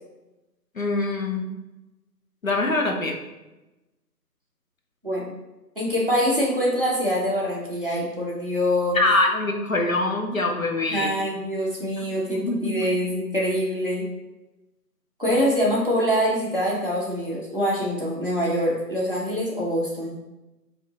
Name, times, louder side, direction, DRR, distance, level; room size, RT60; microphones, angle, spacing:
voice 1, 0.7-1.5 2.4-3.1 8.9-11.1 12.0-12.8, left 2 dB, 55° left, 2 dB, 0.7 m, -24 dB
voice 2, 5.8-9.0 10.9-14.1 15.2-20.2, equal, 35° right, -5 dB, 0.7 m, -24 dB
5.1 x 2.7 x 2.8 m, 1.0 s
figure-of-eight pair, 170°, 50 cm